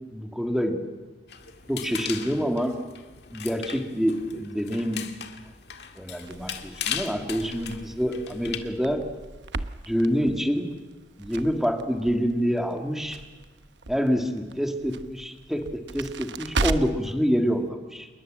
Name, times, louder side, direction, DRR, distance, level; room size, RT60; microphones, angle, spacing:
voice 1, 0.1-0.8 1.7-2.8 3.3-5.0 6.0-9.1 9.9-10.7 11.2-13.2 13.9-15.7 15.9-18.1, equal, ahead, 4 dB, 2.1 m, -26 dB
sound 1, 1.3-8.6, left 8 dB, 70° left, 1.9 m, -38 dB
Crackle, 6.2-17.1, right 3 dB, 85° right, 1.0 m, -36 dB
27.5 x 21.0 x 7.6 m, 1.3 s
head